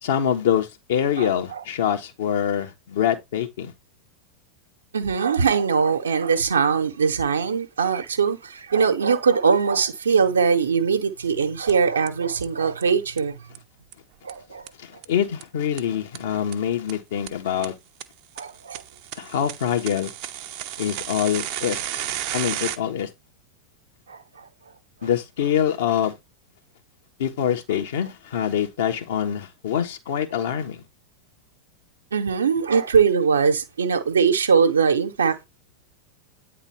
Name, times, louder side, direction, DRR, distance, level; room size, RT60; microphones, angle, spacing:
voice 1, 0.0-3.7 14.8-17.7 19.2-20.1 20.8-22.0 22.3-23.1 25.0-26.1 27.2-30.8, left 9 dB, 55° left, 1.5 m, -25 dB
voice 2, 1.2-1.6 4.9-13.3 14.2-14.6 18.4-18.8 24.1-24.2 32.1-35.5, right 6 dB, 70° right, 1.1 m, -21 dB
sound 1, 11.7-11.8 12.1-12.2 12.4-12.5 12.8-12.9 13.2-13.3 13.6-13.7 13.9-14.0 14.3-14.4 14.7-14.8 15.0-15.1 15.4-15.5 15.8-15.9 16.1-16.2 16.5-16.6 16.9-17.0 17.3-17.4 17.6-17.7 18.0-18.1 18.4-22.8, right 12 dB, 45° right, 0.8 m, -32 dB
9.3 x 3.8 x 4.6 m
figure-of-eight pair, 90°, 0 cm